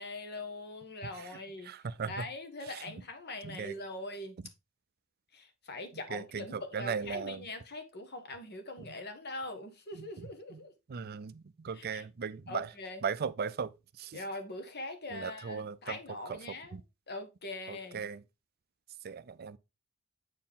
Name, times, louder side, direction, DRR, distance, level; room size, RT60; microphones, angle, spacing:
voice 1, 0.0-1.7 2.1-4.4 5.3-10.7 11.7-12.0 12.5-13.0 14.1-16.8 17.1-18.1, left 2 dB, 50° left, 1.4 m, -42 dB
voice 2, 1.7-2.2 2.7-2.8 3.4-3.7 6.1-7.4 9.9-10.6 10.9-12.7 13.0-13.7 14.0-14.2 15.1-16.0 16.3-16.4 16.7-16.8 17.7-18.2 19.0-19.6, right 6 dB, 45° right, 0.5 m, -37 dB
8.4 x 4.5 x 3.6 m
head